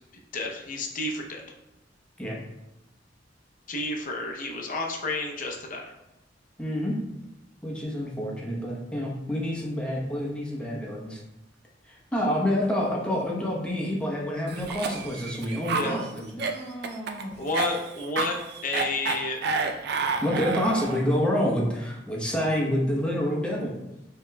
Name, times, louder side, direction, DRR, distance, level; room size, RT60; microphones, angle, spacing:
voice 1, 0.3-1.4 3.7-5.9 15.7-16.0 17.4-19.4, left 2 dB, 45° left, 1 dB, 0.6 m, -31 dB
voice 2, 6.6-7.0 7.6-11.2 11.9-17.3 20.2-23.7, equal, 5° left, -3 dB, 0.9 m, -28 dB
Cough, 14.5-21.1, right 4 dB, 60° right, 0.4 m, -30 dB
5.0 x 3.7 x 2.2 m, 0.93 s
head